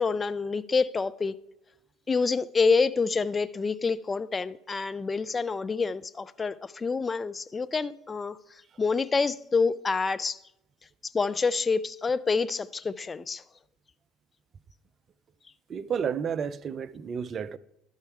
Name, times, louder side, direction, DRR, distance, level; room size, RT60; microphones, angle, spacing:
voice 1, 0.0-1.4 2.1-8.4 8.8-10.4 11.0-13.4, left 4 dB, 25° left, 0.4 m, -27 dB
voice 2, 15.7-17.6, right 7 dB, 40° right, 0.4 m, -31 dB
12.5 x 4.4 x 4.7 m
hypercardioid pair, 70°, 0 cm